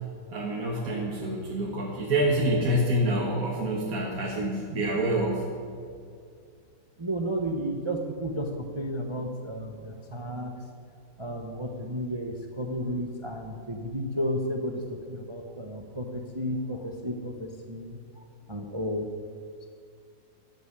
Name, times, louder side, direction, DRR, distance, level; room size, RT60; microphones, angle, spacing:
voice 1, 0.3-5.5, right 1 dB, 50° right, -2 dB, 1.8 m, -27 dB
voice 2, 7.0-10.5 11.2-19.1, equal, 25° right, 3 dB, 0.7 m, -33 dB
14.0 x 6.6 x 9.6 m, 2.2 s
omnidirectional pair, 2.0 m